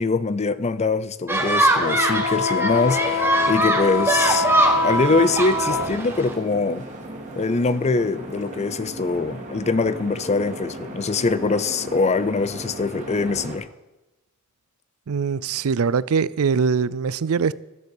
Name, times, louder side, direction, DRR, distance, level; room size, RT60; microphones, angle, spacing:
voice 1, 0.0-4.5 4.8-6.9 7.4-13.7, left 4 dB, 30° left, 0.5 m, -23 dB
sound 1, 1.3-6.3, right 1 dB, 10° right, 1.5 m, -23 dB
Wind instrument woodwind instrument, 1.8-5.9, left 3 dB, 65° left, 1.7 m, -24 dB
sound 2, 2.6-13.6, right 1 dB, 35° right, 2.3 m, -37 dB
voice 2, 15.1-17.5, right 5 dB, 80° right, 0.5 m, -22 dB
13.0 x 7.9 x 7.2 m
head